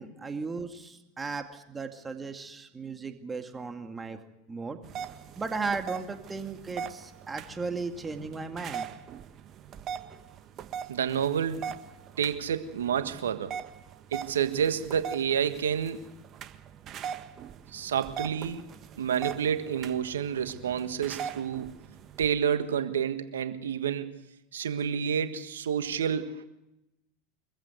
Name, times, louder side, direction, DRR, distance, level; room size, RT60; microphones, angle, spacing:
voice 1, 0.0-4.2 4.5-4.8 5.4-8.9, right 4 dB, 20° right, 6 dB, 2.2 m, -36 dB
sound 1, 4.8-22.3, right 8 dB, 40° right, 1.4 m, -41 dB
voice 2, 10.9-11.8 12.2-13.5 14.1-16.0 17.7-18.6 19.0-21.7 22.2-24.2 24.5-26.4, right 8 dB, 80° right, 10 dB, 1.5 m, -29 dB
24.0 x 15.0 x 8.1 m, 0.93 s
hypercardioid pair, 90°, 0 cm